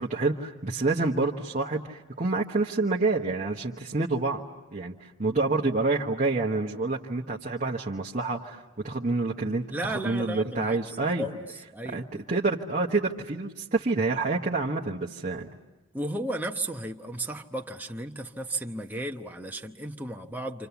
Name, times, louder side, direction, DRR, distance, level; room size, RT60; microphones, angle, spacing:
voice 1, 0.0-4.4 4.7-11.3 11.9-15.5, right 3 dB, 35° right, 1.1 m, -28 dB
voice 2, 9.7-10.8 11.2-11.4 11.7-12.2 15.9-20.7, right 1 dB, 10° right, 0.9 m, -34 dB
29.0 x 27.0 x 7.0 m
head